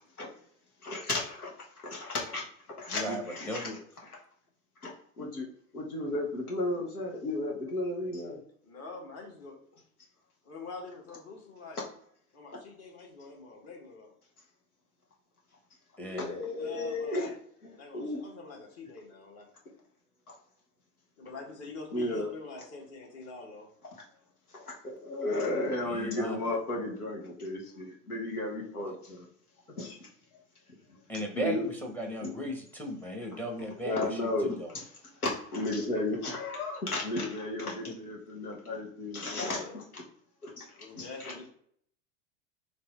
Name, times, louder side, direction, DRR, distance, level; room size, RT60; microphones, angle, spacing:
voice 1, 0.8-1.5 1.8-2.5 2.8-3.6 4.8-5.5 5.7-8.4 16.0-17.3 17.9-18.2 21.9-22.3 23.9-24.0 24.5-29.3 29.8-30.0 31.1-31.7 32.2-32.3 33.8-34.9 35.2-40.0 40.4-40.7 41.0-41.3, left 2 dB, 90° left, -1 dB, 1.0 m, -34 dB
voice 2, 2.9-3.8 16.0-16.4 25.9-26.4 28.8-28.9 31.1-34.8 37.9-38.0, equal, 5° left, 3 dB, 0.7 m, -36 dB
voice 3, 8.6-9.6 10.4-11.8 12.3-14.1 16.6-17.4 17.8-19.5 21.2-23.7 27.6-27.7 39.5-39.8 40.7-41.5, left 4 dB, 35° left, 0 dB, 1.3 m, -45 dB
3.3 x 2.6 x 3.4 m, 0.63 s
figure-of-eight pair, 90°, 43 cm